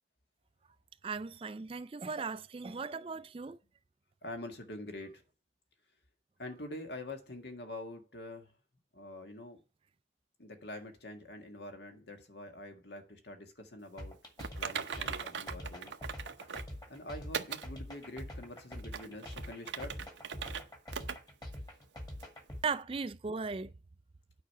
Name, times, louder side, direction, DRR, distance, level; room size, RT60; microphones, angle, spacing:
voice 1, 1.0-3.6 22.6-23.7, right 4 dB, 30° right, 0.4 m, -37 dB
voice 2, 4.2-5.2 6.4-8.5 8.9-9.6 10.4-14.2 14.6-15.9 16.9-20.0, left 1 dB, 70° left, 1.8 m, -45 dB
sound 1, 14.0-22.6, left 1 dB, 20° left, 1.8 m, -44 dB
Typing, 14.4-16.7 17.3-17.7 18.2-18.3 18.8-20.6 20.9-21.2 21.5-21.6 22.2-22.3, right 7 dB, 90° right, 0.8 m, -39 dB
9.1 x 5.1 x 6.8 m
head